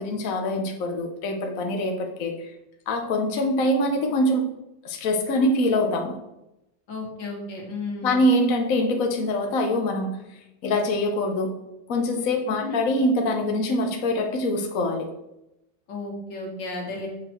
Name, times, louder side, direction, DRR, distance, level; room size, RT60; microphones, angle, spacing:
voice 1, 0.0-2.5 2.9-4.5 4.8-6.2 8.0-10.1 10.6-11.5 11.9-15.1, left 1 dB, 55° left, 3 dB, 1.1 m, -24 dB
voice 2, 6.9-8.2 12.6-12.8 15.9-17.1, left 2 dB, 70° left, -1 dB, 2.6 m, -33 dB
7.0 x 6.0 x 4.4 m, 0.88 s
omnidirectional pair, 2.1 m